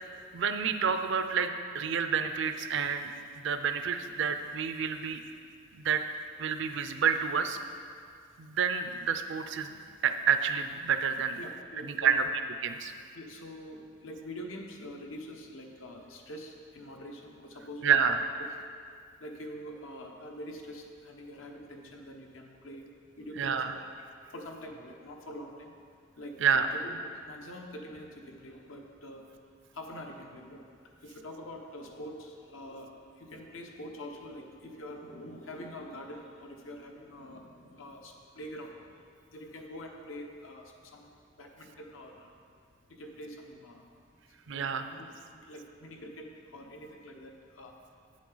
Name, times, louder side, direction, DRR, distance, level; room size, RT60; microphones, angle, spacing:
voice 1, 0.3-3.1 3.4-5.2 5.7-6.0 6.4-7.6 8.4-11.4 11.8-12.2 12.6-12.9 17.8-18.2 23.4-23.7 26.4-26.7 44.5-44.8, right 7 dB, 60° right, 8 dB, 0.5 m, -29 dB
voice 2, 11.4-12.3 13.1-18.1 18.4-18.5 19.2-23.8 24.3-25.7 26.2-29.2 29.7-41.1 41.4-42.4 42.9-43.9 44.5-45.1 45.3-47.8, equal, 75° left, 2 dB, 1.0 m, -45 dB
8.6 x 7.4 x 3.9 m, 2.2 s
head